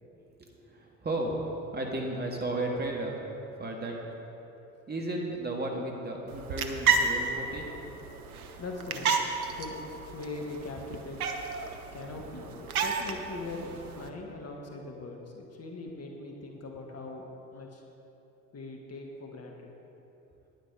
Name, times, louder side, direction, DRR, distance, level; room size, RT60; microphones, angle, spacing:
voice 1, 0.4-1.4 1.7-3.2 3.6-4.0 4.9-7.8, right 1 dB, 25° right, 0 dB, 1.8 m, -34 dB
sound 1, 6.3-14.1, right 5 dB, 85° right, 0.7 m, -32 dB
voice 2, 8.6-9.1 9.5-9.8 10.1-11.2 11.9-17.8 18.5-19.7, left 3 dB, 35° left, 1 dB, 1.5 m, -41 dB
10.5 x 9.2 x 4.8 m, 3.0 s
figure-of-eight pair, 55°, 43 cm